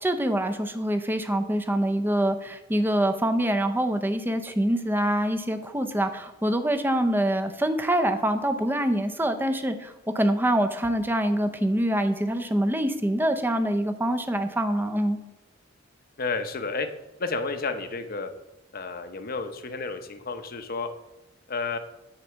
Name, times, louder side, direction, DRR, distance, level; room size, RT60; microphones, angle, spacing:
voice 1, 0.0-15.2, right 1 dB, 10° right, 7 dB, 0.6 m, -25 dB
voice 2, 16.2-16.9 17.2-18.3 18.7-20.9 21.5-21.8, left 4 dB, 45° left, 7 dB, 0.8 m, -31 dB
9.7 x 4.1 x 6.9 m, 0.96 s
head